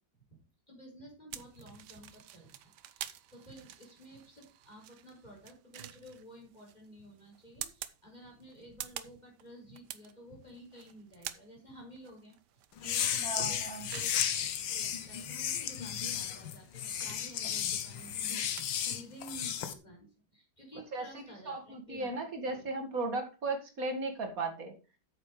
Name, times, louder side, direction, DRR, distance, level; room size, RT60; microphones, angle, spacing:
voice 1, 0.7-13.6 13.9-22.8, right 1 dB, 20° left, 0 dB, 4.6 m, -52 dB
sound 1, 1.3-18.6, right 11 dB, 65° right, 1.2 m, -49 dB
sound 2, 12.8-19.7, left 9 dB, 75° left, 1.7 m, -34 dB
voice 2, 13.2-13.8 20.9-24.7, right 3 dB, 45° right, 4 dB, 2.6 m, -36 dB
8.8 x 7.7 x 4.9 m, 0.31 s
omnidirectional pair, 2.1 m